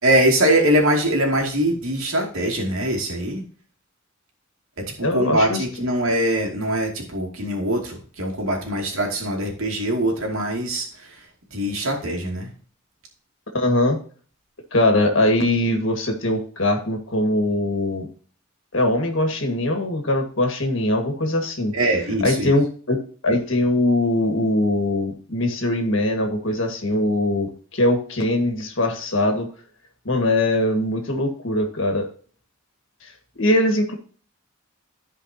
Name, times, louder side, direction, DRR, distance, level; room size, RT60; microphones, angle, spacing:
voice 1, 0.0-3.4 4.8-11.3 11.5-12.5 21.7-22.5, right 1 dB, 85° right, 0 dB, 2.6 m, -22 dB
voice 2, 5.0-5.6 13.5-14.0 14.7-18.1 18.7-21.7 22.2-23.0 23.2-29.5 30.1-32.1 33.0-33.1 33.4-34.0, left 1 dB, 65° left, 3 dB, 1.9 m, -21 dB
14.5 x 5.1 x 2.9 m, 0.43 s
head